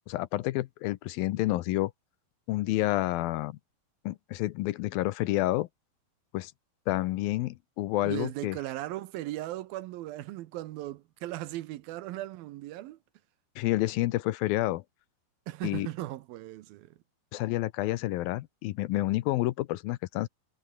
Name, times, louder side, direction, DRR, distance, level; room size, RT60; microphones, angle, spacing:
voice 1, 0.1-1.9 2.5-3.6 4.1-5.7 6.3-6.5 6.9-8.6 13.6-14.8 15.6-15.9 17.3-20.3, left 17 dB, 75° left, 2.4 m, -29 dB
voice 2, 8.0-13.0 15.5-17.0, right 16 dB, 80° right, 2.6 m, -37 dB
omnidirectional pair, 4.4 m